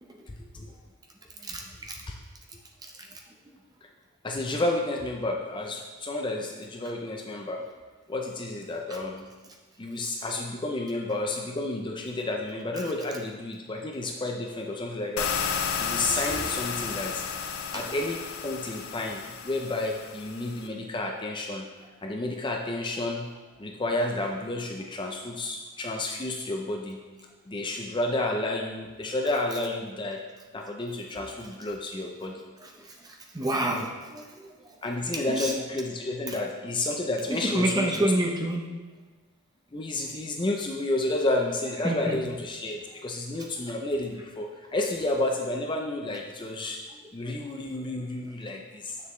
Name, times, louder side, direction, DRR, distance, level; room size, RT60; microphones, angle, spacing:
voice 1, 0.3-0.7 2.1-2.2 4.2-7.6 8.1-9.3 9.8-15.3 15.8-17.2 17.7-21.7 22.0-23.3 23.6-27.0 27.5-30.2 30.5-32.4 34.8-38.1 39.7-46.8 47.1-49.0, left 2 dB, 20° left, 1 dB, 0.5 m, -31 dB
voice 2, 1.4-2.0 3.0-3.1 17.7-17.8 32.6-34.5 35.3-35.5 36.3-36.4 37.3-38.6 41.8-42.2 47.4-47.5, right 1 dB, 15° right, 1 dB, 0.7 m, -29 dB
sound 1, 15.2-20.7, left 6 dB, 70° left, 0.6 m, -33 dB
7.2 x 6.7 x 3.2 m, 1.3 s
head